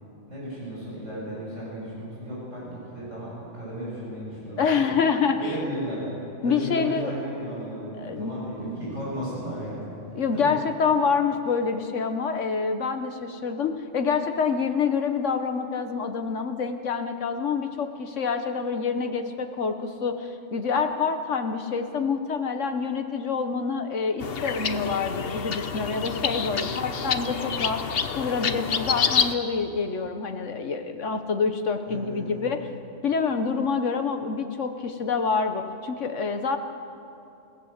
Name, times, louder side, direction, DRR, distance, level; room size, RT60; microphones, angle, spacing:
voice 1, 0.3-5.0 5.4-6.1 6.4-9.9 10.3-10.6 26.6-26.9 31.9-32.5, equal, 75° right, -7 dB, 8.6 m, -35 dB
voice 2, 4.6-5.5 6.4-7.1 7.9-8.4 10.1-27.8 28.1-32.7 33.0-36.6, left 5 dB, 75° left, 7 dB, 1.4 m, -27 dB
sound 1, 24.2-29.3, left 6 dB, 55° left, 1.1 m, -28 dB
29.0 x 17.5 x 7.3 m, 2.7 s
omnidirectional pair, 1.3 m